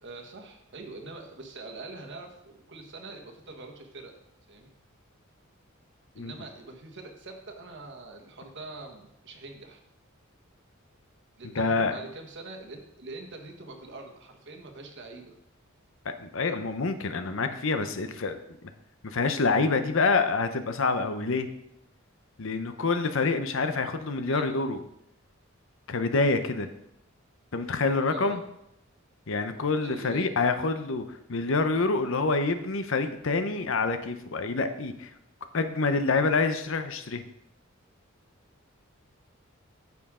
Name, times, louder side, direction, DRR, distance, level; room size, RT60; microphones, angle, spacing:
voice 1, 0.0-4.1 4.5-4.7 6.1-9.8 11.4-15.4 24.3-24.4 28.1-28.4 29.8-30.3, right 3 dB, 60° right, 3 dB, 1.4 m, -44 dB
voice 2, 11.5-11.9 16.0-18.4 19.0-21.5 22.4-24.8 25.9-26.7 27.5-28.4 29.3-35.1 35.5-37.2, left 3 dB, 65° left, 9 dB, 0.8 m, -27 dB
9.6 x 7.0 x 3.7 m, 0.79 s
head